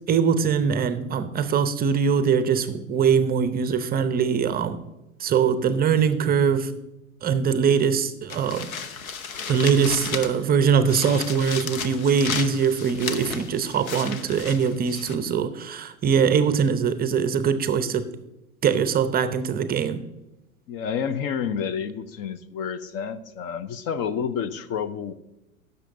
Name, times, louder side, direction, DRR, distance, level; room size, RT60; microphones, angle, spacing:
voice 1, 0.1-4.8 5.2-6.7 7.2-8.7 9.5-18.0 18.6-20.0, right 6 dB, 20° right, 11 dB, 0.6 m, -22 dB
sound 1, 8.3-10.5 10.9-15.2, left 6 dB, 75° left, 1.0 m, -34 dB
voice 2, 20.7-25.1, left 7 dB, 35° left, 13 dB, 0.6 m, -29 dB
16.0 x 6.8 x 2.6 m, 0.95 s
figure-of-eight pair, 90°, 42 cm